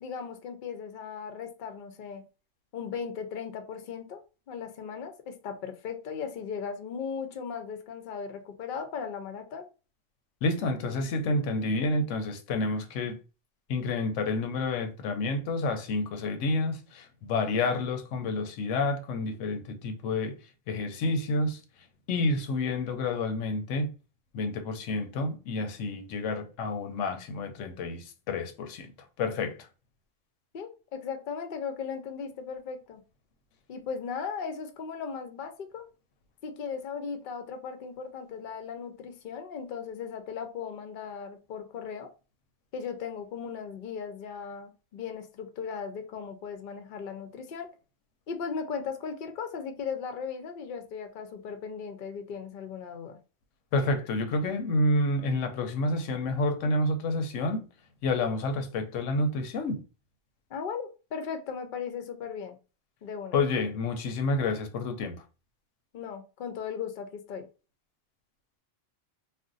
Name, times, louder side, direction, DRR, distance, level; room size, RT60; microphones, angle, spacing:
voice 1, 0.0-2.2 2.7-4.2 4.5-9.7 30.5-33.0 33.7-35.9 36.4-42.1 42.7-47.7 48.3-53.2 60.5-62.6 63.0-63.4 65.9-67.5, left 6 dB, 55° left, 0.6 m, -37 dB
voice 2, 10.4-13.2 13.7-20.4 20.7-21.6 22.1-23.9 24.3-29.7 53.7-57.7 58.0-59.8 63.3-65.2, left 2 dB, 85° left, 0.9 m, -29 dB
2.5 x 2.1 x 3.7 m
omnidirectional pair, 1.3 m